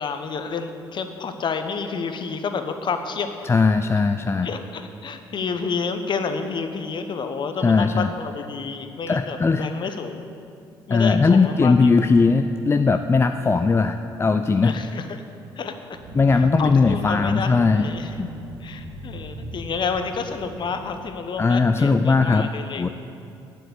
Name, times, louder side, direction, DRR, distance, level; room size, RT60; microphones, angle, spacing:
voice 1, 0.0-3.3 4.4-10.3 10.9-11.7 14.6-15.2 15.6-15.7 16.3-18.2 18.6-22.9, left 5 dB, 40° left, 8 dB, 1.0 m, -30 dB
voice 2, 3.4-4.5 7.6-8.1 9.1-9.9 10.9-14.8 16.2-17.9 18.2-18.3 21.4-22.5 22.8-22.9, left 4 dB, 20° left, 8 dB, 0.5 m, -19 dB
sound 1, 15.9-21.8, right 1 dB, 35° right, 2.5 m, -38 dB
9.1 x 8.3 x 8.1 m, 2.5 s
figure-of-eight pair, 50°, 12 cm